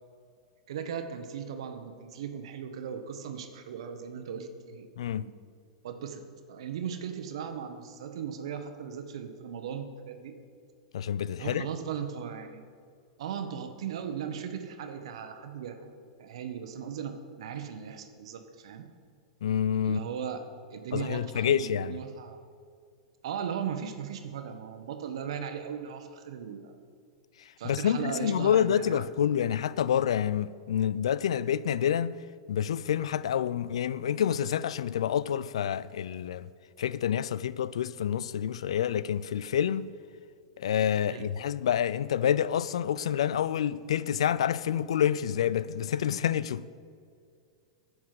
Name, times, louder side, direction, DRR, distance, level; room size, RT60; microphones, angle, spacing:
voice 1, 0.7-4.9 5.1-5.3 5.8-6.2 6.5-10.4 11.4-12.6 13.2-15.9 16.2-18.8 19.8-20.4 20.7-22.4 23.2-26.7 27.6-29.0 41.1-41.3, right 7 dB, 70° right, 1.1 m, -37 dB
voice 2, 5.0-5.3 10.9-11.7 19.4-20.0 20.9-22.0 27.6-32.2 32.5-36.5 36.8-39.9 40.6-46.7, left 9 dB, 75° left, 0.4 m, -28 dB
9.8 x 6.1 x 7.7 m
hypercardioid pair, 110°, 3 cm